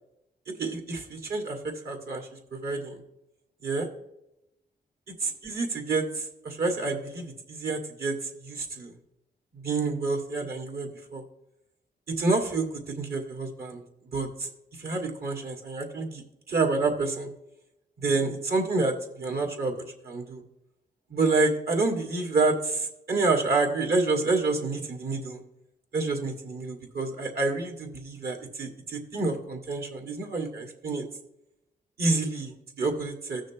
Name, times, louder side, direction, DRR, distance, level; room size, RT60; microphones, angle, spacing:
voice 1, 0.6-3.0 3.6-3.9 5.2-8.9 9.5-11.2 12.1-13.8 14.1-14.5 14.8-17.3 18.0-19.7 20.0-20.4 21.1-25.4 25.9-31.0 32.0-33.4, right 3 dB, 70° right, 1 dB, 2.2 m, -28 dB
16.5 x 6.3 x 3.0 m, 0.85 s
cardioid pair, 85°, 17 cm